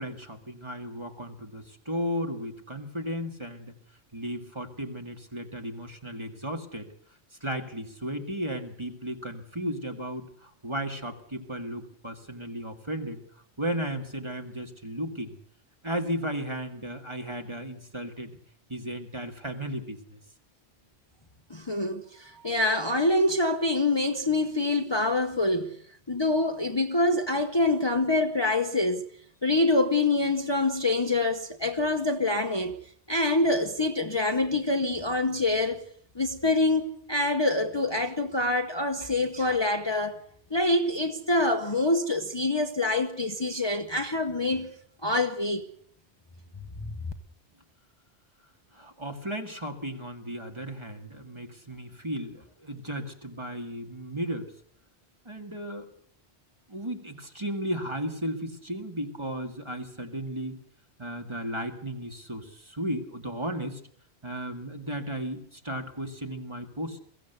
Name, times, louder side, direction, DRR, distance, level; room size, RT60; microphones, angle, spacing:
voice 1, 0.0-3.7 4.1-6.9 7.4-13.2 13.6-15.4 15.8-18.4 18.7-20.2 48.7-54.5 55.3-55.9 56.7-60.6 61.0-63.8 64.2-67.0, equal, 25° right, 2.0 m, -35 dB
voice 2, 21.5-25.7 26.1-29.0 29.4-32.7 33.1-35.8 36.2-40.2 40.5-44.7 45.0-45.6, left 2 dB, 25° left, 1.0 m, -25 dB
22.5 x 15.5 x 8.1 m
omnidirectional pair, 1.1 m